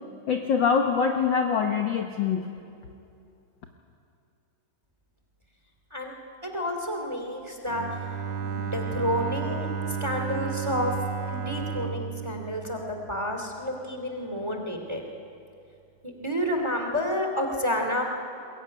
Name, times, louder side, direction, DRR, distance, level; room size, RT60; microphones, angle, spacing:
voice 1, 0.3-2.5, left 6 dB, 55° left, 4 dB, 1.4 m, -24 dB
voice 2, 6.4-7.9 8.4-10.9 11.3-15.0 16.0-18.0, equal, 10° right, 3 dB, 2.2 m, -30 dB
Bowed string instrument, 7.7-13.6, right 6 dB, 65° right, 2.2 m, -33 dB
22.0 x 21.5 x 9.7 m, 2.5 s
omnidirectional pair, 3.6 m